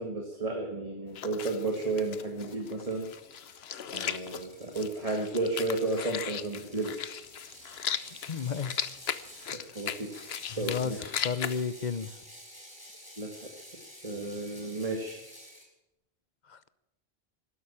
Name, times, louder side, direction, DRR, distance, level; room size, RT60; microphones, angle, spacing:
voice 1, 0.0-3.1 3.9-7.1 9.7-10.2 10.5-11.3 13.2-13.5 14.0-15.2, right 2 dB, 35° right, 2 dB, 1.9 m, -33 dB
sound 1, 1.1-11.7, left 8 dB, 75° left, 1.1 m, -38 dB
Ratchet pawl, 2.5-15.7, equal, 20° left, 3.7 m, -51 dB
voice 2, 8.3-8.9 9.6-9.7 10.6-10.9 11.2-12.1 16.5-16.7, left 6 dB, 50° left, 15 dB, 0.9 m, -32 dB
12.5 x 11.5 x 8.7 m, 0.94 s
omnidirectional pair, 1.0 m